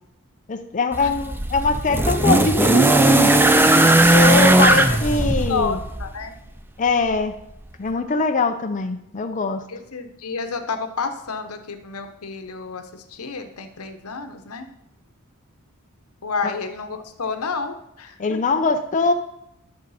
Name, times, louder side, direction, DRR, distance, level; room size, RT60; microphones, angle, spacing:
voice 1, 0.5-3.3 4.1-5.8 6.8-7.4 7.8-9.6 18.2-19.1, left 3 dB, 35° left, 6 dB, 0.5 m, -22 dB
sound 1, 0.9-6.1 7.2-7.3, right 2 dB, 10° right, 0.5 m, -17 dB
voice 2, 4.5-5.0 5.5-6.3 9.7-14.7 16.2-18.4, left 4 dB, 90° left, 7 dB, 0.9 m, -30 dB
11.5 x 6.5 x 4.1 m, 0.80 s
head